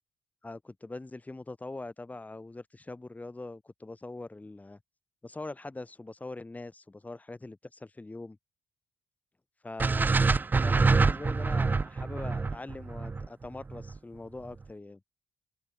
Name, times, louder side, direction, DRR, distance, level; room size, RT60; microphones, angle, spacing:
voice 1, 0.4-4.8 5.2-8.4 9.6-10.1 10.6-15.0, left 2 dB, 15° left, 5.2 m, -42 dB
sound 1, 9.8-14.0, right 4 dB, 20° right, 0.3 m, -26 dB
open air
cardioid pair, 130°, 10 cm